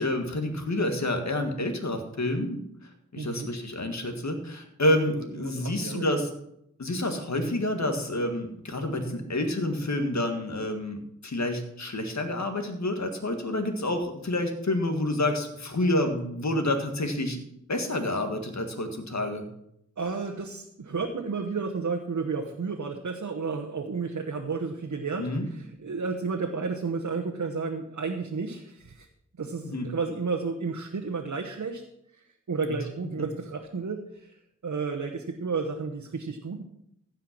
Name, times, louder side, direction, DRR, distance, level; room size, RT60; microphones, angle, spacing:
voice 1, 0.0-2.6 3.1-6.3 6.8-17.4 17.7-19.4 25.2-25.5 29.6-29.9 32.6-32.8 33.2-33.3, left 1 dB, 70° left, 5 dB, 1.8 m, -28 dB
voice 2, 3.2-3.5 5.1-6.1 20.0-29.1 29.4-31.8 32.1-32.2 32.5-36.6, right 4 dB, 80° right, 3 dB, 1.0 m, -32 dB
15.0 x 5.7 x 6.0 m, 0.77 s
wide cardioid pair, 45°, 29 cm